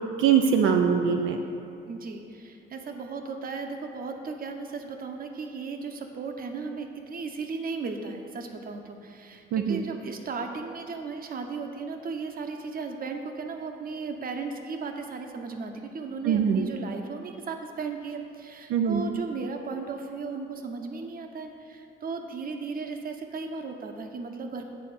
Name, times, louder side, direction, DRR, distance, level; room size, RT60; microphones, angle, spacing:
voice 1, 0.2-1.4 9.5-9.8 16.2-16.7 18.7-19.0, right 7 dB, 85° right, 4 dB, 0.5 m, -22 dB
voice 2, 1.9-24.6, right 4 dB, 45° right, 4 dB, 0.9 m, -36 dB
9.1 x 4.2 x 6.7 m, 2.6 s
cardioid pair, 90°, 20 cm